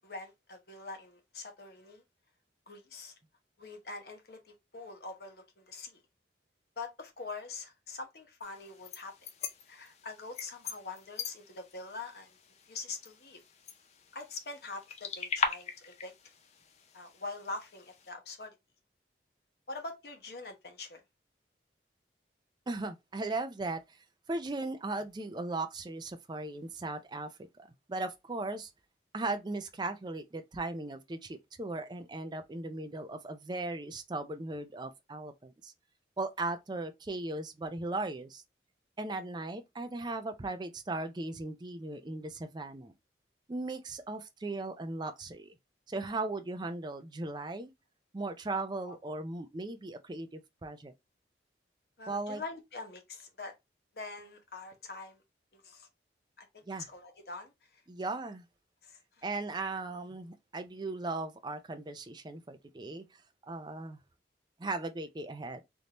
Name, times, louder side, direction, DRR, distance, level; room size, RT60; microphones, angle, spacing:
voice 1, 0.0-2.0 2.7-3.1 3.6-6.0 6.8-9.1 9.7-12.4 12.7-13.4 14.1-16.1 16.9-18.6 19.7-21.0 48.9-49.0 52.0-53.5 53.9-55.2 55.5-55.9 56.4-57.8 58.8-59.3, left 3 dB, 60° left, 1.0 m, -44 dB
sound 1, 8.4-18.1, left 5 dB, 35° left, 0.4 m, -41 dB
voice 2, 22.7-23.8 24.3-27.3 27.6-28.7 29.1-35.7 36.2-38.4 39.0-42.9 43.5-45.5 45.9-47.7 48.1-50.9 52.1-52.4 56.7-56.9 57.9-58.4 59.2-63.0 63.5-64.0 64.6-65.6, right 2 dB, 25° right, 0.4 m, -37 dB
3.5 x 2.6 x 2.9 m
head